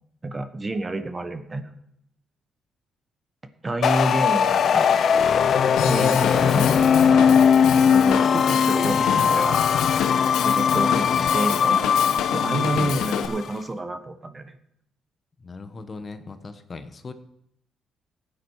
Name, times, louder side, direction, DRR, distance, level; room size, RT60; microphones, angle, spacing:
voice 1, 0.2-1.7 3.6-4.9 5.9-7.3 7.9-9.6 10.3-11.9 12.3-14.5, right 2 dB, 25° right, 9 dB, 1.2 m, -29 dB
sound 1, 3.8-13.5, left 7 dB, 60° left, 0.6 m, -20 dB
Drum kit / Drum, 5.8-13.3, left 9 dB, 90° left, 0.9 m, -30 dB
voice 2, 10.9-11.4 12.7-13.1 15.4-17.1, left 3 dB, 35° left, 9 dB, 1.1 m, -38 dB
15.0 x 8.9 x 4.7 m, 0.74 s
cardioid pair, 90°, 0 cm